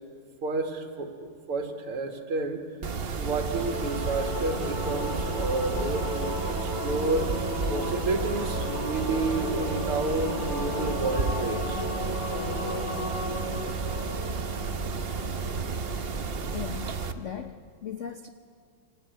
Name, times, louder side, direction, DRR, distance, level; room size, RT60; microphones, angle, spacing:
voice 1, 0.4-2.6 3.2-7.3 7.7-11.9, right 3 dB, 80° right, 4 dB, 2.8 m, -30 dB
Mechanisms, 2.8-17.1, right 4 dB, 60° right, 0.6 m, -32 dB
Singing / Musical instrument, 3.5-14.7, left 1 dB, 50° left, 3.2 m, -34 dB
Wind instrument woodwind instrument, 10.0-16.6, left 1 dB, 35° left, 5.1 m, -44 dB
voice 2, 16.5-18.3, left 9 dB, 70° left, 7 dB, 0.7 m, -38 dB
25.0 x 17.0 x 9.3 m, 2.1 s
omnidirectional pair, 2.4 m